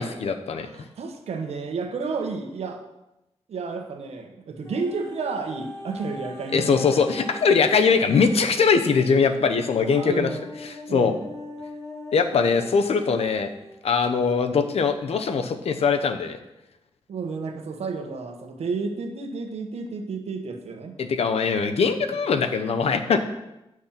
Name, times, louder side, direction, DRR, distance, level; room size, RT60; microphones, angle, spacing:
voice 1, 0.0-0.7 6.5-10.3 10.6-11.1 12.1-13.5 13.8-16.4 21.0-23.2, left 5 dB, 75° left, 7 dB, 0.9 m, -21 dB
voice 2, 0.6-2.8 3.5-6.8 9.9-10.4 10.9-11.2 17.1-21.0, right 4 dB, 80° right, 5 dB, 1.3 m, -31 dB
sound 1, 4.6-13.7 14.4-14.5, left 2 dB, 30° left, 3.0 m, -41 dB
8.9 x 6.3 x 5.8 m, 0.92 s
cardioid pair, 85°, 11 cm